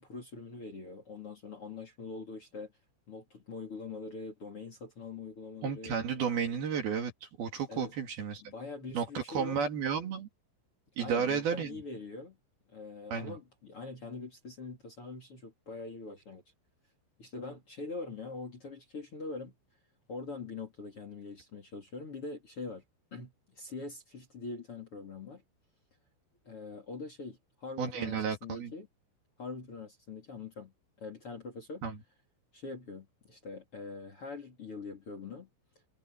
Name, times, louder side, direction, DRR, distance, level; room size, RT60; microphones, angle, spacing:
voice 1, 0.0-2.7 3.1-6.0 7.7-7.9 8.4-9.6 11.0-12.4 12.7-16.4 17.2-19.5 20.1-22.8 23.1-25.4 26.4-28.9 29.4-30.7 31.0-31.8 32.5-35.5, left 3 dB, 35° left, 3.2 m, -43 dB
voice 2, 5.6-8.5 8.9-10.3 11.0-11.7 13.1-13.4 27.8-28.7 31.8-32.0, right 6 dB, 55° right, 3.9 m, -32 dB
omnidirectional pair, 5.7 m